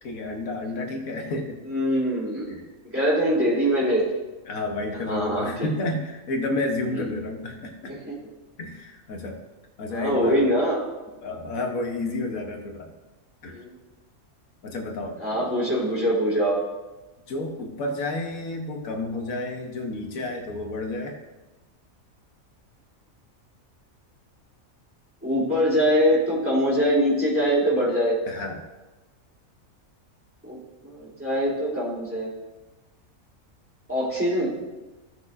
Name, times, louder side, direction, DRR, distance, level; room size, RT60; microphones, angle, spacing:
voice 1, 0.0-1.6 2.5-2.6 4.5-7.9 8.6-9.4 9.8-10.5 11.2-12.9 13.4-13.6 14.6-15.5 17.3-21.2 28.3-28.6, left 2 dB, 85° left, 2 dB, 1.5 m, -31 dB
voice 2, 1.7-2.5 2.8-4.0 5.1-5.7 6.9-7.0 7.8-8.2 9.9-10.8 13.5-13.7 15.2-16.6 25.2-28.2 30.4-30.6 30.8-32.3 33.9-34.5, equal, 10° right, -7 dB, 3.0 m, -23 dB
15.5 x 6.1 x 2.6 m, 1.1 s
omnidirectional pair, 1.4 m